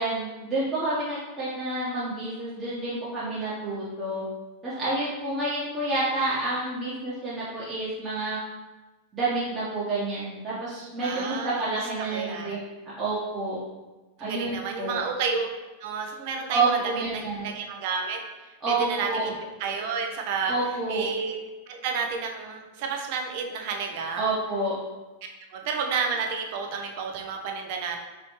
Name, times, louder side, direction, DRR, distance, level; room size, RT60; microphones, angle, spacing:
voice 1, 0.0-4.2 4.6-8.4 9.1-12.6 12.8-13.6 14.2-15.0 16.5-17.4 18.6-19.3 20.5-21.1 24.2-24.7, right 2 dB, 20° right, -10 dB, 1.1 m, -29 dB
voice 2, 11.0-11.7 12.1-12.6 14.2-15.5 15.8-19.3 19.6-20.5 20.9-21.4 21.7-24.2 25.5-28.0, right 5 dB, 50° right, 3 dB, 0.6 m, -31 dB
4.0 x 3.1 x 3.1 m, 1.2 s
figure-of-eight pair, 90°, 0 cm